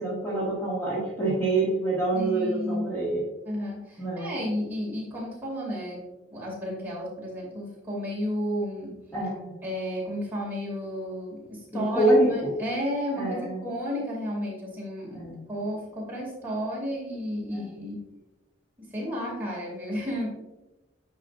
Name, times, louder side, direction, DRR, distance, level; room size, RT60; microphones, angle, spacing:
voice 1, 0.0-3.2 4.0-4.4 9.1-9.5 11.7-12.5 13.2-13.6 15.1-15.4 17.5-17.7, right 2 dB, 10° left, -8 dB, 1.6 m, -26 dB
voice 2, 2.1-2.8 3.4-6.0 6.3-9.0 9.6-15.2 15.5-18.0 18.9-20.3, equal, 10° right, -5 dB, 2.5 m, -32 dB
9.9 x 5.4 x 2.5 m, 1.0 s
head